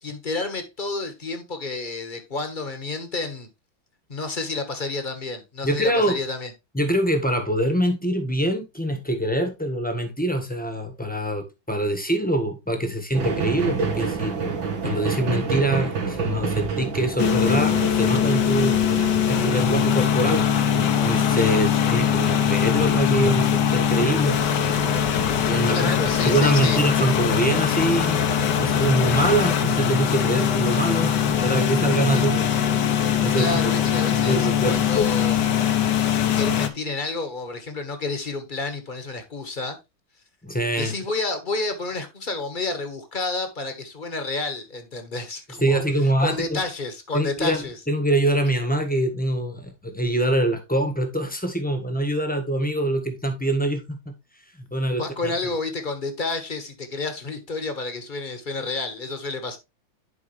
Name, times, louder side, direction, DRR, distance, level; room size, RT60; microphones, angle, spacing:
voice 1, 0.0-3.5 4.1-6.5 25.7-26.8 32.1-32.2 33.3-35.4 36.0-39.8 40.8-45.8 46.2-47.8 54.9-59.6, left 3 dB, 30° left, 1.3 m, -30 dB
voice 2, 5.6-6.2 6.7-14.5 14.8-20.5 20.7-24.4 25.0-25.1 25.5-25.9 26.2-28.3 28.6-32.5 33.2-33.6 34.1-34.8 40.4-40.9 45.6-46.6 47.1-54.1 54.7-55.3, right 1 dB, 5° left, 1.2 m, -24 dB
sound 1, 13.1-28.7 29.3-29.4, right 5 dB, 80° right, 2.2 m, -31 dB
sound 2, 17.2-36.7, left 9 dB, 65° left, 1.5 m, -21 dB
11.0 x 4.8 x 3.2 m
omnidirectional pair, 2.1 m